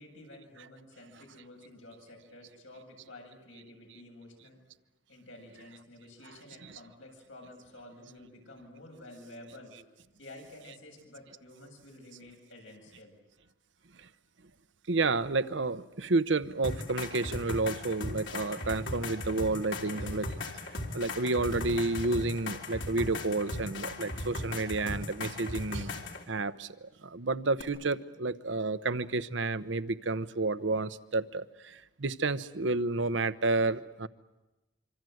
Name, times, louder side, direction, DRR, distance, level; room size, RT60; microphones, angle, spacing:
voice 1, 0.0-4.6 5.1-9.8 10.2-13.1 19.8-20.2, left 1 dB, 85° left, 1 dB, 7.8 m, -51 dB
voice 2, 6.2-6.8 14.0-14.1 14.9-20.3 20.9-25.9 26.3-34.1, right 3 dB, 70° right, 14 dB, 0.9 m, -31 dB
sound 1, 16.6-26.2 27.6-27.7, left 2 dB, 65° left, 3.2 m, -37 dB
26.0 x 25.5 x 7.9 m, 1.0 s
head